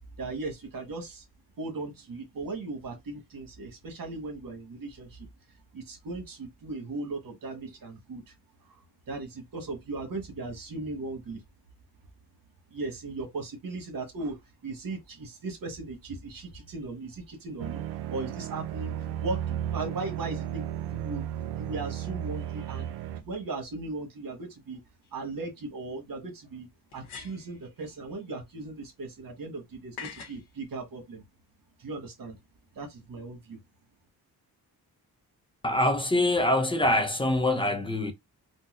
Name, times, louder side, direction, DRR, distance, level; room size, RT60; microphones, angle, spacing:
voice 1, 0.2-1.2 1.6-5.3 5.7-8.2 8.7-8.8 9.1-11.4 12.7-14.4 14.6-17.8 18.1-21.3 21.5-24.8 25.1-26.7 26.9-31.2 31.8-32.4 32.7-33.6, right 3 dB, 60° right, 1.3 m, -37 dB
sound 1, 17.6-23.2, right 11 dB, 90° right, 0.5 m, -34 dB
sound 2, 25.0-25.1 26.9-27.6 30.0-30.4, left 6 dB, 90° left, 0.9 m, -43 dB
voice 2, 35.6-38.1, left 1 dB, 15° left, 0.5 m, -24 dB
3.9 x 2.2 x 2.5 m
cardioid pair, 100°, 38 cm